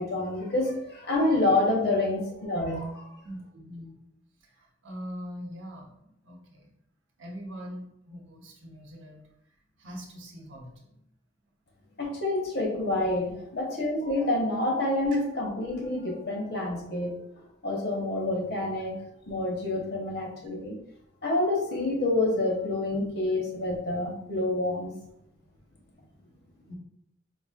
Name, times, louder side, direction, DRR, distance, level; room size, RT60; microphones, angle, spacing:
voice 1, 0.0-3.0 12.0-17.2 17.6-18.9 19.3-20.8 21.2-24.9, left 2 dB, 55° left, -1 dB, 1.0 m, -28 dB
voice 2, 3.2-4.0 4.4-6.7 7.2-9.3 9.8-11.0 11.8-12.0 26.7-26.8, equal, 85° right, 0 dB, 0.8 m, -43 dB
4.2 x 2.7 x 2.3 m, 0.75 s
head